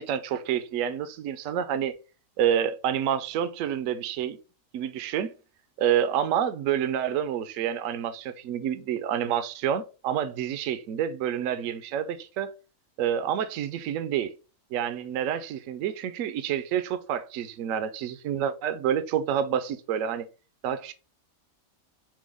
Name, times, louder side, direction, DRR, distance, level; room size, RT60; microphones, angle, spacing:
voice 1, 0.0-1.9 2.4-4.4 4.7-5.3 5.8-12.5 13.0-14.3 14.7-20.3 20.6-20.9, right 9 dB, 70° right, 0.9 m, -28 dB
6.1 x 2.2 x 3.4 m
omnidirectional pair, 1.5 m